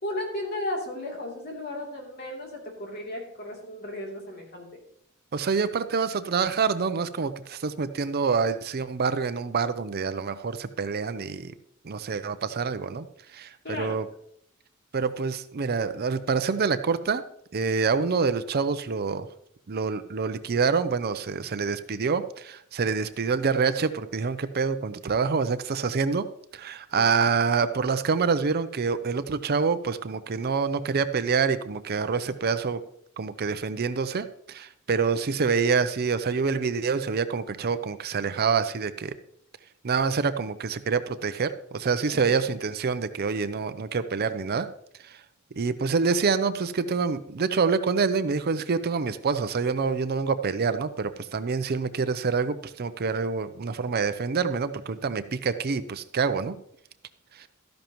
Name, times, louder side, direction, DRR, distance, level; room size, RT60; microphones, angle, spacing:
voice 1, 0.0-4.8 13.6-14.0 27.0-27.1 42.1-42.4, left 1 dB, 50° left, -1 dB, 3.1 m, -35 dB
voice 2, 5.3-11.5 11.8-13.1 13.3-14.0 14.9-17.2 17.5-19.3 19.7-26.3 26.5-32.8 33.2-39.2 39.8-44.7 45.0-45.1 45.6-56.5 57.4-57.5, right 5 dB, 45° right, 12 dB, 0.5 m, -26 dB
13.0 x 10.5 x 3.0 m, 0.71 s
head